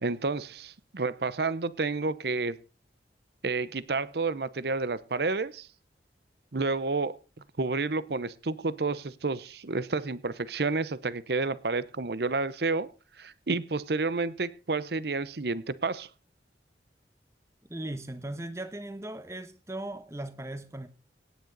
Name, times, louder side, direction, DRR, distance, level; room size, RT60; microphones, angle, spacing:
voice 1, 0.0-2.6 3.4-5.7 6.5-7.2 7.6-12.9 13.2-16.1, right 3 dB, 65° right, 17 dB, 0.8 m, -30 dB
voice 2, 17.7-20.9, right 1 dB, 15° right, 12 dB, 1.1 m, -38 dB
17.5 x 9.2 x 4.0 m, 0.34 s
head